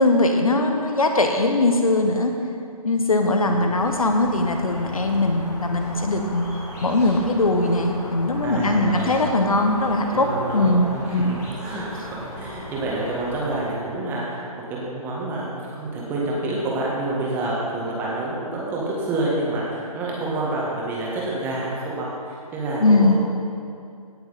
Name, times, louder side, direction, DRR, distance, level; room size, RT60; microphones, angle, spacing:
voice 1, 0.0-2.3 2.8-6.5 6.8-11.4 22.8-23.2, left 2 dB, 65° left, 4 dB, 1.2 m, -20 dB
sound 1, 3.7-13.6, equal, 15° left, 2.1 m, -37 dB
voice 2, 8.4-9.2 10.1-14.4 14.7-23.2, right 2 dB, 10° right, -5 dB, 1.6 m, -28 dB
17.0 x 6.7 x 4.2 m, 2.5 s
figure-of-eight pair, 145°, 20 cm